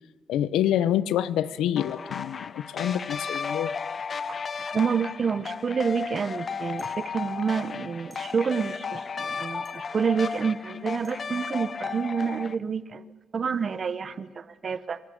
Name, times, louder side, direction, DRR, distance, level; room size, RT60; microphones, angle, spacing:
voice 1, 0.3-3.7, left 11 dB, 90° left, 17 dB, 0.7 m, -26 dB
sound 1, 1.8-12.5, left 5 dB, 35° left, 0.6 m, -34 dB
voice 2, 4.7-13.0 13.3-15.0, right 6 dB, 35° right, 15 dB, 0.9 m, -28 dB
sound 2, 6.8-7.0 8.1-8.2 9.6-9.8 11.0-11.2, right 2 dB, 15° right, 3.9 m, -53 dB
25.5 x 14.0 x 8.8 m, 1.4 s
cardioid pair, 135°, 0 cm